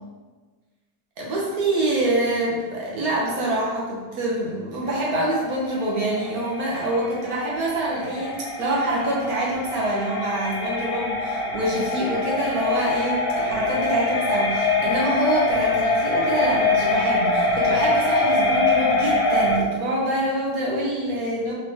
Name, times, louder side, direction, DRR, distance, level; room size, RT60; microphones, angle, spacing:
voice 1, 1.2-21.5, right 1 dB, 60° right, -4 dB, 0.9 m, -25 dB
sound 1, 4.9-19.6, left 3 dB, 70° left, 1.4 m, -24 dB
4.2 x 3.6 x 2.7 m, 1.3 s
omnidirectional pair, 2.4 m